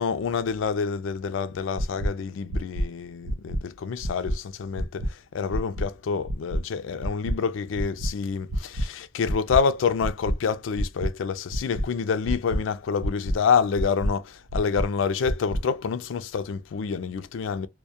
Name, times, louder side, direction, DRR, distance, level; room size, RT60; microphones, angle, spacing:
voice 1, 0.0-17.7, left 6 dB, 80° left, 0.4 m, -27 dB
sound 1, 1.8-2.1 2.5-2.8 3.2-3.6 4.0-4.3 4.7-5.1 5.5-5.8 6.2-6.6 7.0-7.3 7.7-8.1 8.5-8.8 9.2-9.6 10.0-10.3 10.7-11.1 11.5-11.8 12.2-12.6 13.0-13.3 13.7-14.1 14.5-14.8 15.2-15.6, equal, 55° right, 0.5 m, -27 dB
2.2 x 2.1 x 2.7 m
head